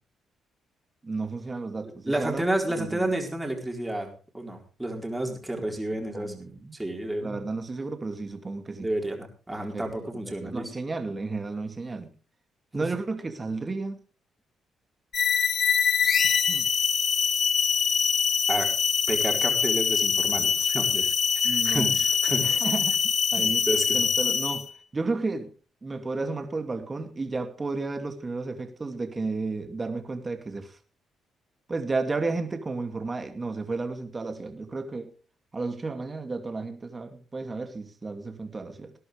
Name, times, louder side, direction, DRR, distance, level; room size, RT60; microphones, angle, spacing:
voice 1, 1.0-2.4 2.8-3.1 6.1-6.8 7.2-8.9 9.5-12.1 12.7-14.0 16.2-16.7 21.4-22.0 22.4-23.7 23.9-24.7 24.9-25.5 25.8-30.8 31.7-35.1 35.5-38.9, right 3 dB, 25° right, 2.4 m, -33 dB
voice 2, 2.1-4.1 4.3-7.4 8.8-10.7 12.7-12.9 18.5-18.7 19.1-21.1 21.4-22.6 23.4-24.0, right 1 dB, 10° right, 4.3 m, -31 dB
sound 1, 15.1-24.7, left 6 dB, 50° left, 1.0 m, -24 dB
19.5 x 11.0 x 3.4 m
cardioid pair, 90°, 0 cm